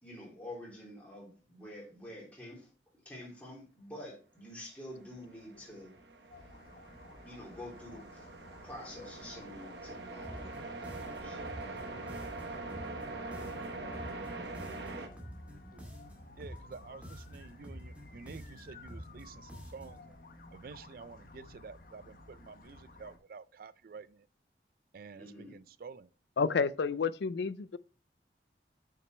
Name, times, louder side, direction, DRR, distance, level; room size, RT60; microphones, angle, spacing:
voice 1, 0.0-2.7 3.0-5.9 7.2-8.3 8.6-11.9 13.4-13.5 25.2-25.5, left 1 dB, 10° left, 3.2 m, -48 dB
sound 1, 4.9-15.1, right 3 dB, 75° right, 1.1 m, -43 dB
sound 2, 6.3-23.2, left 2 dB, 50° left, 1.1 m, -55 dB
sound 3, 10.2-20.1, equal, 10° right, 2.0 m, -49 dB
voice 2, 15.1-15.9 16.4-20.2 20.5-24.3 24.9-26.1, right 5 dB, 55° right, 0.4 m, -50 dB
voice 3, 26.4-27.8, left 5 dB, 75° left, 0.4 m, -30 dB
9.1 x 5.9 x 3.2 m
head